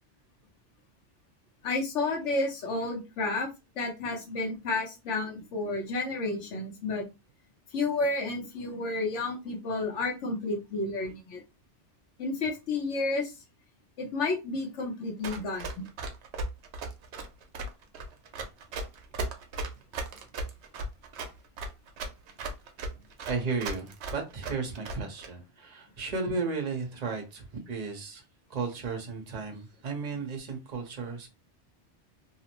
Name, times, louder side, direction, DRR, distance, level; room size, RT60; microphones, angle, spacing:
voice 1, 1.6-3.5 3.8-7.0 7.7-11.4 12.2-13.3 14.0-15.9, left 3 dB, 85° left, 1 dB, 1.2 m, -31 dB
Run, 15.2-25.3, right 2 dB, 70° right, 0.8 m, -36 dB
voice 2, 23.3-28.2 28.5-31.3, right 4 dB, 40° right, 3 dB, 0.7 m, -34 dB
2.8 x 2.0 x 2.9 m, 0.26 s
omnidirectional pair, 1.2 m